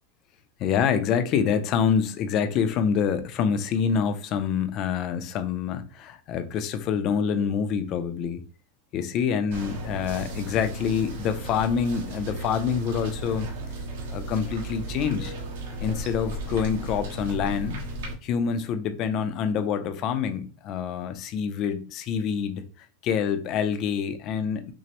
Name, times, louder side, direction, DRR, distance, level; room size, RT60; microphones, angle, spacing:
voice 1, 0.6-8.4 8.9-13.5 14.1-15.3 15.8-17.8 18.2-24.7, left 7 dB, 35° left, 0.4 m, -26 dB
sound 1, 9.5-18.1, right 2 dB, 75° right, 1.3 m, -35 dB
6.0 x 2.0 x 2.9 m
supercardioid pair, 165°, 0 cm